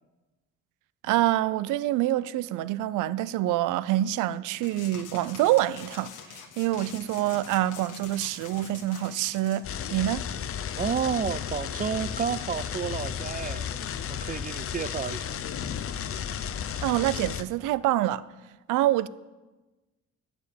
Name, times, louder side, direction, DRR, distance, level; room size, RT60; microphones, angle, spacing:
voice 1, 1.0-10.2 16.8-18.2 18.7-19.1, right 14 dB, 90° right, 0.5 m, -26 dB
sound 1, 4.6-9.6, left 7 dB, 90° left, 1.2 m, -45 dB
sound 2, 9.6-17.4, left 8 dB, 45° left, 0.6 m, -33 dB
voice 2, 10.7-13.7 14.1-15.4, right 7 dB, 30° right, 0.4 m, -31 dB
12.0 x 5.2 x 8.6 m
cardioid pair, 90°, 30 cm